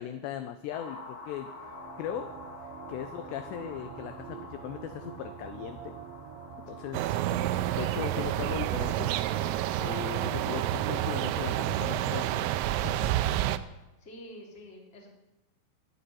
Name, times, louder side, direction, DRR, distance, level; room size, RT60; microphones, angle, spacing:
voice 1, 0.0-1.5 2.0-2.3 2.9-5.9 6.7-7.1 7.5-9.1 9.8-13.0, left 10 dB, 80° left, 10 dB, 2.5 m, -38 dB
sound 1, 0.7-12.5, left 3 dB, 65° left, 4.3 m, -48 dB
sound 2, 1.1-12.6, right 8 dB, 75° right, 3.2 m, -46 dB
sound 3, 6.9-13.6, right 13 dB, 90° right, 3.3 m, -29 dB
voice 2, 14.0-15.1, equal, 20° left, -1 dB, 2.4 m, -47 dB
13.0 x 9.7 x 9.7 m, 1.0 s
omnidirectional pair, 5.6 m